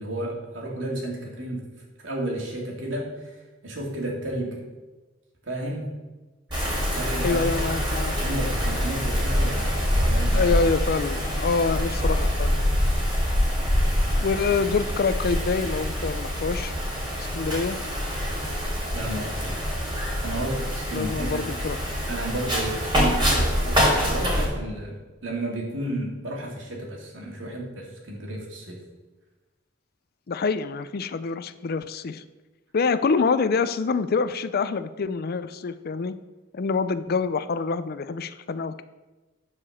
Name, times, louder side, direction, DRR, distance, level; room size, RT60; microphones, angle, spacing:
voice 1, 0.0-1.6 2.0-4.6 5.4-5.9 6.9-7.7 8.2-10.5 18.9-19.7 20.2-21.5 22.1-28.8, right 1 dB, 75° right, -1 dB, 2.4 m, -32 dB
Wind, 6.5-24.5, equal, 25° right, 3.2 m, -25 dB
voice 2, 7.2-8.1 10.3-12.6 14.2-16.7 17.2-17.8 20.9-21.8 30.3-32.2 32.7-36.2 36.5-38.8, left 4 dB, 55° left, 13 dB, 0.5 m, -26 dB
9.7 x 4.9 x 7.1 m, 1.2 s
head